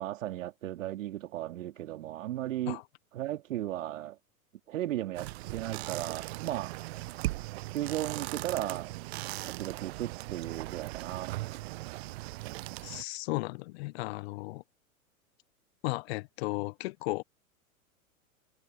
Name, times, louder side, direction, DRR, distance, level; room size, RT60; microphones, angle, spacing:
voice 1, 0.0-2.8 3.1-4.2 4.7-6.7 7.7-8.9 9.4-11.3, right 13 dB, 65° right, 2.8 m, -35 dB
sound 1, 5.1-13.0, right 20 dB, 50° right, 0.7 m, -38 dB
voice 2, 12.8-14.6 15.8-17.2, left 22 dB, 45° left, 0.9 m, -35 dB
hypercardioid pair, 105°, 42 cm